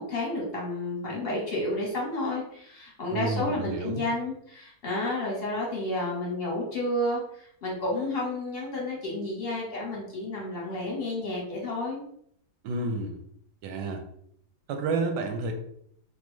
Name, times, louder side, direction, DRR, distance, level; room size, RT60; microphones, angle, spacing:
voice 1, 0.0-12.0, left 1 dB, 40° left, -3 dB, 1.0 m, -31 dB
voice 2, 3.1-4.1 12.6-13.2 13.6-14.0 14.7-15.5, right 3 dB, 85° right, 5 dB, 1.2 m, -30 dB
3.3 x 2.2 x 3.0 m, 0.69 s
omnidirectional pair, 1.8 m